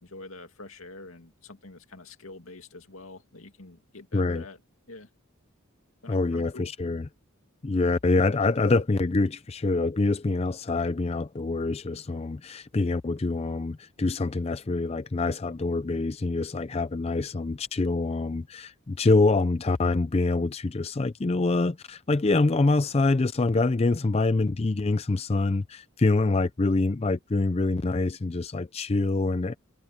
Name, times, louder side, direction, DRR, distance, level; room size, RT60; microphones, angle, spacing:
voice 1, 0.0-4.6 4.9-5.1 6.0-6.7, left 2 dB, 85° left, 2.3 m, -46 dB
voice 2, 4.1-4.4 6.1-7.1 7.6-29.5, left 3 dB, 30° left, 0.5 m, -25 dB
head